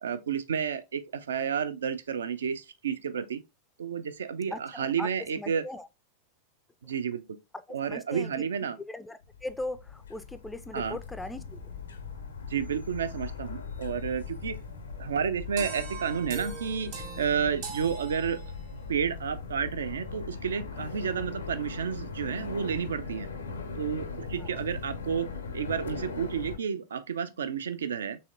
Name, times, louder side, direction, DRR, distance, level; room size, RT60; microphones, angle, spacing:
voice 1, 0.0-3.4 3.8-5.6 6.8-7.2 7.7-8.8 10.7-11.0 12.4-14.5 15.0-18.4 18.9-23.3 23.8-28.2, right 7 dB, 65° right, 0.4 m, -31 dB
voice 2, 4.5-5.9 7.5-8.4 8.9-11.8 24.4-24.5, left 2 dB, 5° left, 0.3 m, -39 dB
sound 1, 9.2-26.6, left 5 dB, 70° left, 0.5 m, -40 dB
sound 2, 10.7-25.4, right 1 dB, 30° right, 0.7 m, -49 dB
sound 3, 15.6-18.9, right 5 dB, 50° right, 1.3 m, -41 dB
4.1 x 3.1 x 2.4 m
figure-of-eight pair, 90°, 0 cm